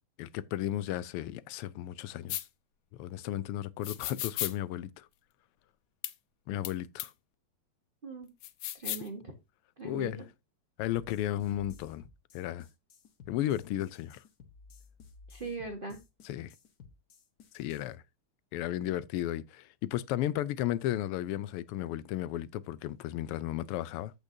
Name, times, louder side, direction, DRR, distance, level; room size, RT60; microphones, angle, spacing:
voice 1, 0.2-2.4 3.0-5.1 6.5-7.1 9.8-10.2 10.8-12.0 12.3-12.7 13.3-14.2 16.2-16.5 17.5-18.0 18.5-24.1, left 13 dB, 90° left, 1.6 m, -34 dB
sound 1, 2.3-2.4 3.8-4.5 6.0-6.1 6.6-6.7 7.0-7.1 8.4-9.1, left 14 dB, 70° left, 1.3 m, -35 dB
voice 2, 8.7-9.3 9.8-10.2 15.3-16.0, right 3 dB, 35° right, 0.8 m, -40 dB
sound 2, 10.8-17.9, left 5 dB, 50° left, 1.5 m, -55 dB
14.5 x 5.2 x 2.7 m
omnidirectional pair, 2.4 m